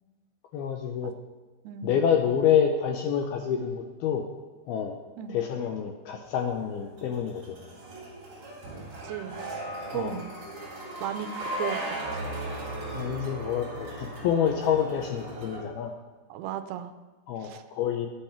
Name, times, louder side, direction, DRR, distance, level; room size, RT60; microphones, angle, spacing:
voice 1, 0.5-1.1 1.8-4.2 4.7-5.0 5.3-7.7 9.9-10.2 12.9-15.9 17.3-18.1, left 8 dB, 80° left, 3 dB, 2.2 m, -27 dB
voice 2, 1.6-2.0 5.2-5.4 9.0-9.4 9.9-10.3 11.0-12.3 16.3-16.9 17.4-17.6, right 10 dB, 80° right, 10 dB, 2.5 m, -36 dB
sound 1, 6.3-15.6, right 1 dB, 35° right, 3.3 m, -37 dB
10.5 x 8.9 x 5.9 m, 1.3 s
omnidirectional pair, 5.3 m